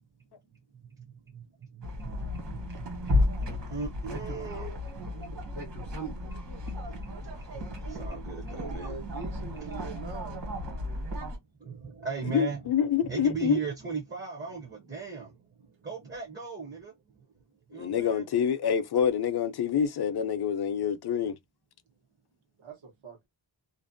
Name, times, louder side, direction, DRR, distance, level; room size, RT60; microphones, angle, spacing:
voice 1, 0.7-5.1 5.9-6.0 6.8-9.0 9.6-10.0 11.6-12.6 13.0-17.2 17.7-18.3, right 5 dB, 25° right, 0.5 m, -39 dB
sound 1, 1.8-11.4, left 1 dB, 65° right, 1.3 m, -33 dB
voice 2, 8.5-10.4 22.6-23.3, right 5 dB, 90° right, 1.0 m, -43 dB
voice 3, 12.3-13.6 17.7-21.4, left 8 dB, 60° left, 0.5 m, -27 dB
2.5 x 2.1 x 2.5 m
wide cardioid pair, 135°, 45 cm